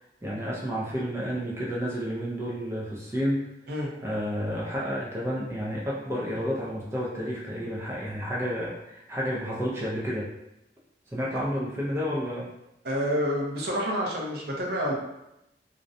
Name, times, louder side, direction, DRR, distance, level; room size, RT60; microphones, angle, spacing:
voice 1, 0.2-3.5 4.0-10.3 11.1-12.5, equal, 15° right, -5 dB, 0.3 m, -30 dB
voice 2, 12.8-14.9, equal, 60° right, -2 dB, 0.6 m, -28 dB
2.4 x 2.1 x 2.5 m, 0.87 s
head